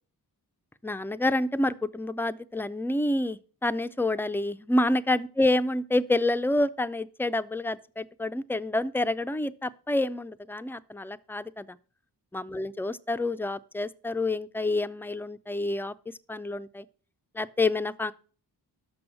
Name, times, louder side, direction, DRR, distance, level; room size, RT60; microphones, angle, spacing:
voice 1, 0.8-11.8 12.3-15.9 16.3-16.9 17.3-18.1, left 2 dB, 5° left, 0.4 m, -28 dB
6.2 x 6.0 x 6.2 m
cardioid pair, 40°, 42 cm